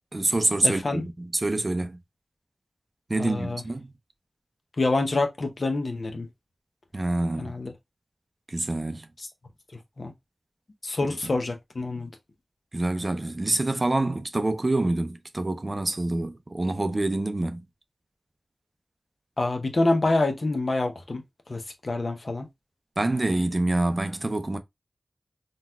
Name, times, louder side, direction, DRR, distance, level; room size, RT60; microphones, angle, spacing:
voice 1, 0.1-2.0 3.1-3.9 6.9-7.5 8.5-9.1 11.2-11.3 12.7-17.6 23.0-24.6, right 2 dB, 40° right, 0.5 m, -26 dB
voice 2, 0.6-1.0 3.2-3.6 4.8-6.3 7.4-7.7 9.2-9.3 10.0-10.1 10.8-12.1 19.4-21.2 21.5-22.5, left 2 dB, 60° left, 0.7 m, -26 dB
3.9 x 2.3 x 2.2 m
cardioid pair, 40°, 0 cm